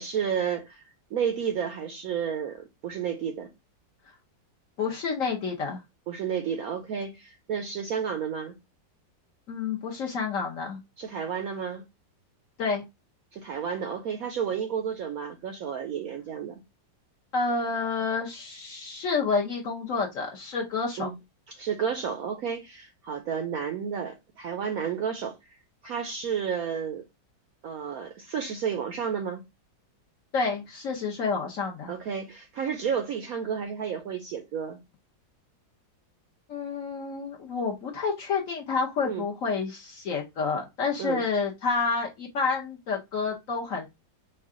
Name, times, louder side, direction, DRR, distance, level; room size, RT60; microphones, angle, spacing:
voice 1, 0.0-3.5 6.1-8.6 11.0-11.8 13.3-16.6 21.0-21.1 21.5-27.0 27.6-29.4 31.9-34.8 39.0-39.3 41.0-41.3, right 7 dB, 75° right, 0.8 m, -31 dB
voice 2, 4.8-5.8 9.5-10.8 12.6-12.8 17.3-21.1 30.3-31.9 36.5-43.9, left 4 dB, 60° left, 0.9 m, -29 dB
4.6 x 2.3 x 3.6 m
omnidirectional pair, 2.0 m